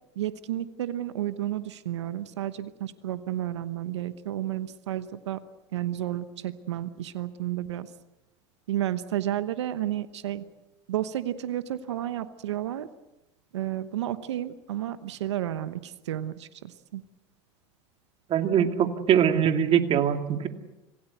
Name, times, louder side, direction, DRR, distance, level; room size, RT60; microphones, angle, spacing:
voice 1, 0.2-5.4 5.7-7.9 8.7-10.4 10.9-12.9 13.5-17.0, right 12 dB, 90° right, 12 dB, 1.1 m, -32 dB
voice 2, 18.3-20.5, right 9 dB, 40° right, 6 dB, 2.4 m, -22 dB
26.0 x 17.0 x 8.0 m, 1.0 s
hypercardioid pair, 100°, 14 cm